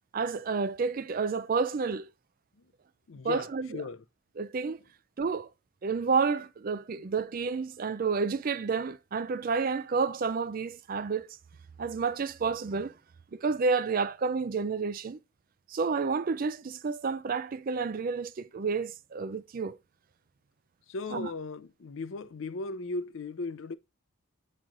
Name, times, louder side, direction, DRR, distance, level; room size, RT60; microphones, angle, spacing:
voice 1, 0.1-2.1 3.2-3.8 4.4-4.8 5.2-5.5 5.8-11.3 11.8-12.9 13.3-15.2 15.7-19.8 21.1-21.3, right 5 dB, 40° right, 0.4 m, -30 dB
voice 2, 3.1-4.0 20.9-23.8, left 3 dB, 60° left, 0.5 m, -37 dB
8.7 x 3.1 x 3.7 m
head